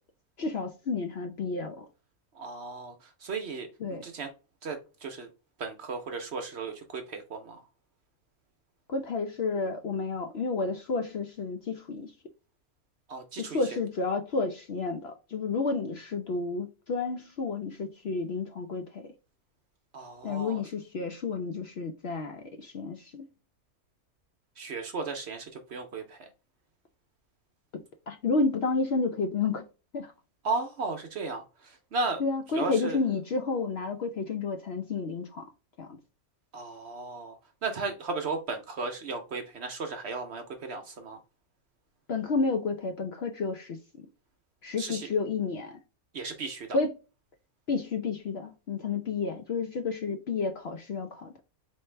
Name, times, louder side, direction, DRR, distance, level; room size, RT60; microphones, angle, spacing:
voice 1, 0.4-1.9 3.8-4.0 8.9-12.1 13.4-19.1 20.2-23.3 28.1-29.6 29.9-30.1 32.2-35.4 35.8-35.9 42.1-44.1 44.6-45.8 46.7-46.9 47.7-51.3, left 4 dB, 60° left, 0.7 m, -31 dB
voice 2, 2.3-4.3 4.6-5.3 5.6-7.6 13.1-13.6 19.9-20.6 24.6-26.3 30.4-32.2 32.5-33.0 36.5-37.4 37.6-41.2 44.8-45.1 46.1-46.8, right 3 dB, 55° right, 0.9 m, -35 dB
4.4 x 3.2 x 3.2 m
omnidirectional pair, 1.5 m